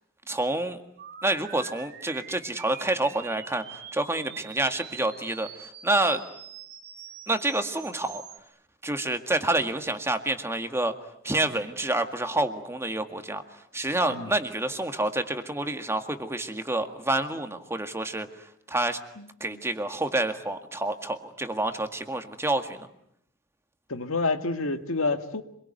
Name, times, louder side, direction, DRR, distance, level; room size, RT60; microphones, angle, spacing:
voice 1, 0.3-0.8 1.2-6.2 7.3-8.2 8.8-10.9 11.2-13.4 13.7-18.3 18.7-19.0 19.4-22.9, right 2 dB, 15° right, 7 dB, 1.9 m, -28 dB
sound 1, 1.0-8.4, right 8 dB, 50° right, 2.6 m, -45 dB
voice 2, 23.9-25.4, left 3 dB, 80° left, 8 dB, 2.0 m, -28 dB
27.0 x 22.5 x 9.2 m, 0.72 s
head